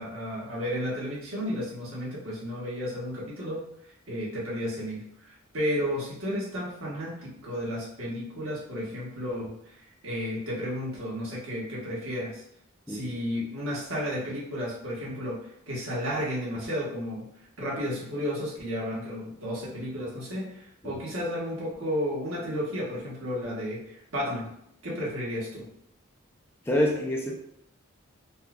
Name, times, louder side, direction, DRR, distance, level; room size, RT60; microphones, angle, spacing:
voice 1, 0.0-3.7 4.1-9.8 10.0-12.4 12.9-17.3 17.6-24.5 24.8-25.7, equal, 90° right, -6 dB, 1.3 m, -33 dB
voice 2, 26.7-27.4, left 1 dB, 10° left, -2 dB, 0.4 m, -26 dB
4.1 x 2.3 x 2.3 m, 0.74 s
head